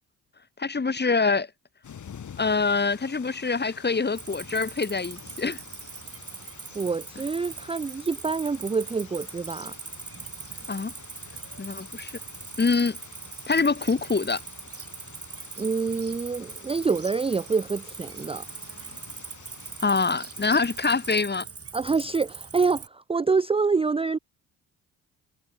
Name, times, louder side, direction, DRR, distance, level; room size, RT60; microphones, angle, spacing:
voice 1, 0.6-1.5 2.4-5.6 10.7-10.9 11.6-12.1 12.6-13.0 13.5-14.4 19.8-21.5, left 4 dB, 25° left, 2.2 m, -25 dB
sound 1, 1.8-21.2, left 7 dB, 50° left, 3.2 m, -49 dB
Cricket, 4.1-22.9, right 5 dB, 35° right, 6.1 m, -41 dB
voice 2, 6.7-9.7 15.6-18.5 21.7-24.2, right 4 dB, 15° right, 0.6 m, -26 dB
hypercardioid pair, 55°, 39 cm